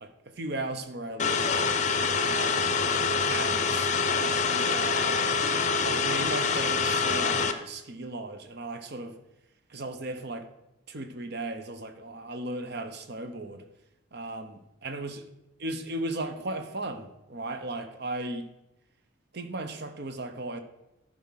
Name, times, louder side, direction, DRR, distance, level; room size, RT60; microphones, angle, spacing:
voice 1, 0.0-2.8 3.3-3.9 4.6-5.4 5.8-9.2 9.7-10.5 10.9-13.7 14.1-15.2 15.6-18.5 19.3-20.6, right 2 dB, 50° right, 9 dB, 0.9 m, -36 dB
sound 1, 1.2-7.5, left 5 dB, 35° left, 0.6 m, -26 dB
11.0 x 4.9 x 5.7 m, 0.92 s
head